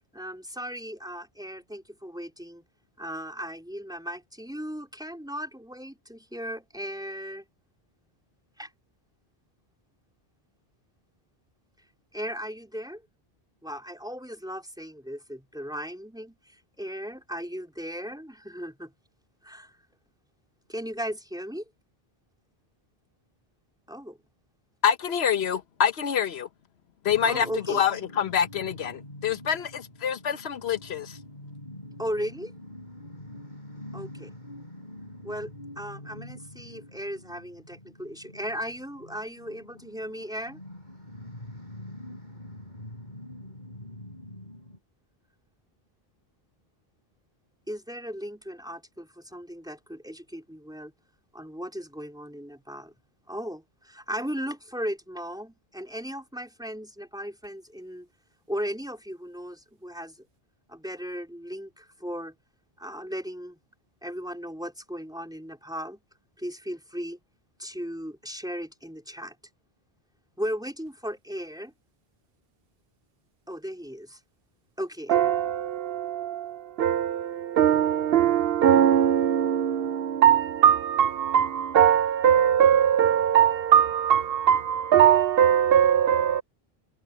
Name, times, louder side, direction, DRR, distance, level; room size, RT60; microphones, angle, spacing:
voice 1, 0.1-2.6 3.0-7.5 8.6-8.7 12.1-13.0 13.6-18.9 19.4-19.8 20.7-21.6 23.9-24.2 27.2-27.8 32.0-32.5 33.9-34.3 35.2-40.6 47.7-50.9 51.3-52.9 53.3-58.1 58.5-60.3 60.7-62.3 62.8-63.6 64.0-66.0 66.4-67.2 67.6-69.4 70.4-71.7 73.5-74.2 74.8-75.3, equal, 5° right, 3.8 m, -36 dB
voice 2, 24.8-26.5 27.0-31.2, left 8 dB, 85° left, 1.1 m, -26 dB
sound 1, 27.1-44.8, left 1 dB, 45° left, 7.2 m, -45 dB
voice 3, 75.1-86.4, right 9 dB, 70° right, 0.8 m, -21 dB
omnidirectional pair, 1.0 m